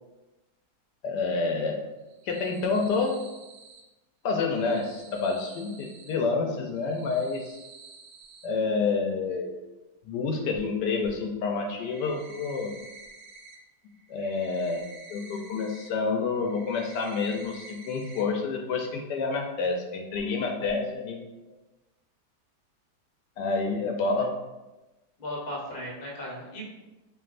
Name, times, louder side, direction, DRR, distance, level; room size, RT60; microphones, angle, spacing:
voice 1, 1.0-1.8 2.3-3.2 4.2-7.6 8.4-9.6 10.0-12.7 14.1-21.2 23.4-24.4, left 4 dB, 85° left, 2 dB, 1.2 m, -28 dB
sound 1, 2.0-3.8 4.4-6.1 6.7-8.5 10.5-10.6 11.0-11.1 11.6-13.6 13.9-15.9 16.2-18.2 18.5-18.6 19.0-19.1 20.1-20.3 20.6-20.7, right 3 dB, 85° right, 1.2 m, -49 dB
voice 2, 25.2-26.7, equal, 35° left, -4 dB, 1.0 m, -36 dB
4.6 x 2.9 x 2.5 m, 1.1 s
omnidirectional pair, 1.8 m